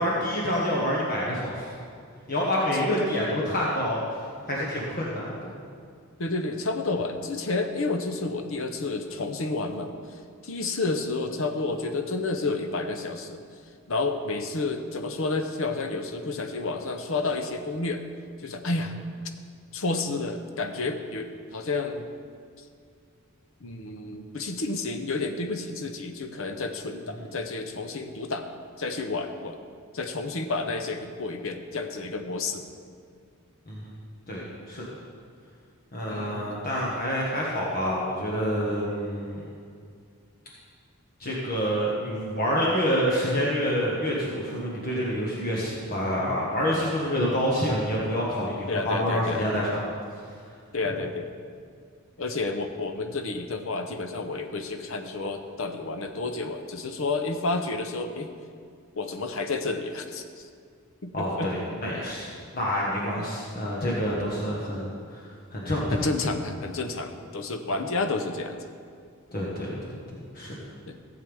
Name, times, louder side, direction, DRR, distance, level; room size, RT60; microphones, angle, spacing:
voice 1, 0.0-1.7 2.3-4.0 4.5-5.5 33.7-33.9 34.3-34.8 35.9-39.4 41.2-49.8 61.1-65.2 65.5-65.9 69.3-70.5, equal, 40° left, -5 dB, 1.4 m, -27 dB
voice 2, 6.2-9.9 10.4-13.4 13.9-18.0 18.4-18.9 19.7-22.1 23.6-28.5 28.8-29.6 29.9-32.7 36.1-36.6 48.7-49.5 50.7-51.3 52.2-58.3 59.0-60.2 61.0-61.5 63.2-63.3 65.9-68.6 70.9-71.0, left 3 dB, 60° left, 6 dB, 0.8 m, -30 dB
15.0 x 7.9 x 3.5 m, 2.2 s
head